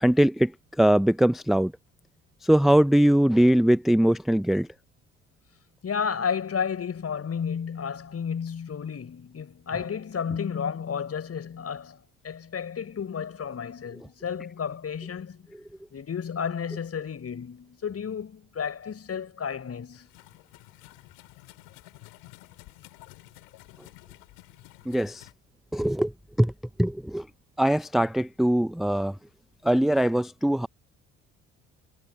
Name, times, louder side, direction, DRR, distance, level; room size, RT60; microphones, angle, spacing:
voice 1, 0.0-0.5 0.8-1.7 2.4-4.7 24.9-25.3 25.7-26.1 26.4-26.5 26.8-27.3 27.6-29.1 29.6-30.7, right 1 dB, ahead, 0.6 m, -21 dB
voice 2, 5.8-15.5 15.9-20.1, left 7 dB, 45° left, 6.6 m, -32 dB
sound 1, 19.9-25.3, left 25 dB, 80° left, 6.5 m, -51 dB
hypercardioid pair, 60°, 35 cm